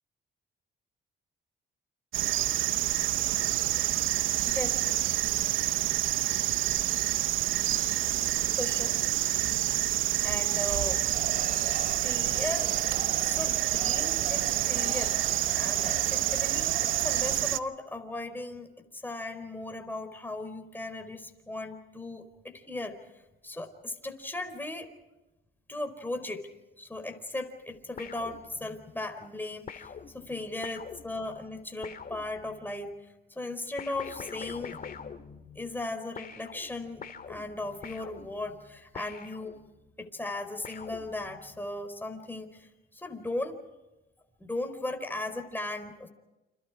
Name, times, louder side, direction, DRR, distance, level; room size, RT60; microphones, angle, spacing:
sound 1, 2.1-17.6, right 14 dB, 90° right, 0.9 m, -28 dB
voice 1, 8.6-8.9 10.2-11.0 12.0-12.7 13.2-18.7 18.9-22.2 22.5-23.0 23.4-24.9 25.7-26.5 26.8-32.9 33.3-34.8 35.5-39.6 40.0-43.6 44.4-46.1, left 2 dB, 10° left, 5 dB, 4.5 m, -37 dB
sound 2, 11.1-17.4, right 4 dB, 40° right, 3.2 m, -41 dB
sound 3, 28.0-29.0 29.7-32.8 33.8-35.9 36.2-39.9 40.6-41.6, left 6 dB, 45° left, 2.1 m, -45 dB
30.0 x 27.5 x 4.9 m, 1.0 s
cardioid pair, 90°, 20 cm